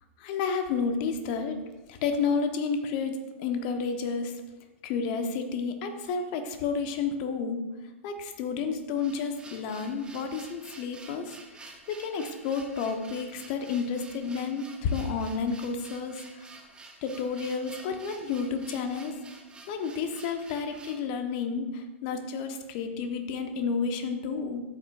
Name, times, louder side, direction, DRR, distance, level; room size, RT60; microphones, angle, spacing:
voice 1, 0.2-1.6 1.9-4.4 4.8-7.6 8.0-16.5 17.0-19.2 19.7-24.6, left 5 dB, 40° left, 6 dB, 1.1 m, -31 dB
sound 1, 8.7-21.1, right 3 dB, 10° right, 1.1 m, -49 dB
13.0 x 8.7 x 2.5 m, 1.1 s
figure-of-eight pair, 110°, 7 cm